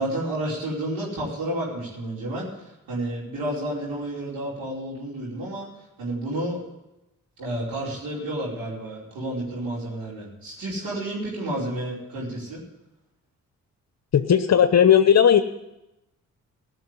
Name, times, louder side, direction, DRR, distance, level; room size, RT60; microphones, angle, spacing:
voice 1, 0.0-5.7 6.0-6.6 7.4-12.6, right 1 dB, 85° right, -6 dB, 5.0 m, -30 dB
voice 2, 14.1-15.4, left 8 dB, 50° left, 10 dB, 0.9 m, -16 dB
15.0 x 6.4 x 9.9 m, 0.93 s
supercardioid pair, 60°, 34 cm